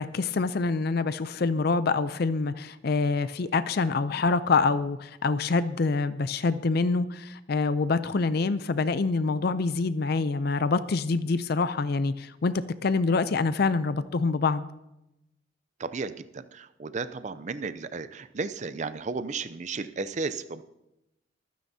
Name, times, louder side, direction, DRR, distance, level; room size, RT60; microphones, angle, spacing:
voice 1, 0.0-12.5 12.8-14.6, left 4 dB, 50° left, 13 dB, 0.4 m, -26 dB
voice 2, 15.8-20.6, right 4 dB, 35° right, 12 dB, 0.5 m, -34 dB
24.5 x 9.4 x 2.7 m, 0.90 s
head